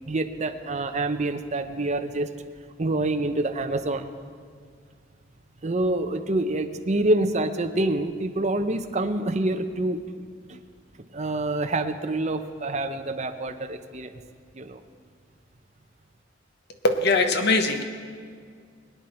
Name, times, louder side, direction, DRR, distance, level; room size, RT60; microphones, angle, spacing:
voice 1, 0.1-2.3 2.8-4.1 5.6-10.0 10.5-10.6 11.1-14.1 14.5-14.8, right 2 dB, 35° right, 7 dB, 0.8 m, -26 dB
voice 2, 16.8-17.8, left 3 dB, 60° left, 6 dB, 1.1 m, -21 dB
22.5 x 9.6 x 4.4 m, 2.1 s
head